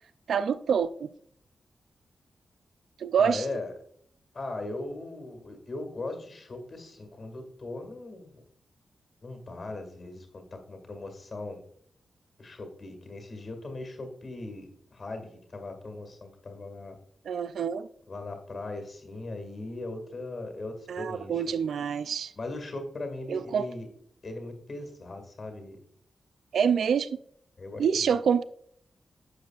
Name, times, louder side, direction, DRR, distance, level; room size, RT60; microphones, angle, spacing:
voice 1, 0.3-1.1 3.0-3.4 17.3-17.9 20.9-22.3 23.3-23.7 26.5-27.2 27.8-28.4, right 7 dB, 80° right, 0.3 m, -26 dB
voice 2, 3.2-3.7 4.3-8.4 9.2-11.6 12.4-16.9 18.1-21.4 22.4-23.9 24.2-25.8 27.6-28.2, left 2 dB, 40° left, 2.0 m, -39 dB
11.5 x 7.6 x 2.4 m
wide cardioid pair, 125°, 0 cm